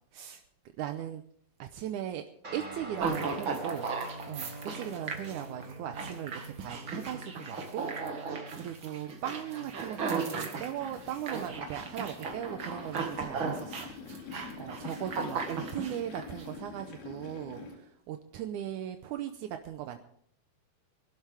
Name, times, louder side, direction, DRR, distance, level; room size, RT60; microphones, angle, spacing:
voice 1, 0.8-1.2 1.6-2.2 2.5-3.9 4.3-8.3 8.6-13.9 14.6-20.0, right 11 dB, 75° right, 7 dB, 1.9 m, -38 dB
Guitar, 2.4-10.1, right 1 dB, 20° right, 3.6 m, -46 dB
sound 1, 3.0-16.4, right 4 dB, 45° right, 2.0 m, -36 dB
sound 2, 10.7-17.8, left 5 dB, 85° left, 4.5 m, -46 dB
23.0 x 12.0 x 3.5 m, 0.62 s
omnidirectional pair, 4.2 m